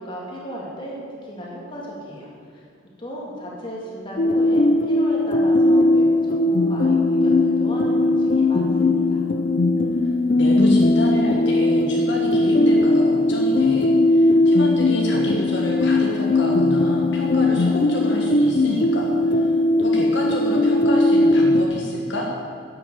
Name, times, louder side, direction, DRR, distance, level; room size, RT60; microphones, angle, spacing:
voice 1, 0.0-2.7 3.0-9.2, equal, 25° left, -4 dB, 2.6 m, -35 dB
sound 1, 4.2-21.6, left 2 dB, 40° left, 0.5 m, -19 dB
voice 2, 10.3-22.3, left 1 dB, 60° left, -2 dB, 1.6 m, -29 dB
10.5 x 8.2 x 7.8 m, 2.3 s
head